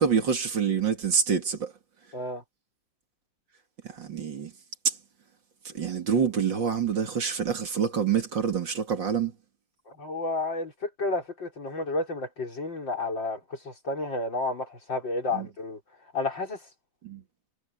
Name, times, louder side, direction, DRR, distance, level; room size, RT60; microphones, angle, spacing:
voice 1, 0.0-1.7 3.8-4.5 4.8-4.9 5.6-9.3 15.3-15.5 17.0-17.2, right 7 dB, 70° right, 3.1 m, -26 dB
voice 2, 10.0-15.8 16.1-16.6, left 2 dB, 70° left, 6.7 m, -31 dB
omnidirectional pair, 2.1 m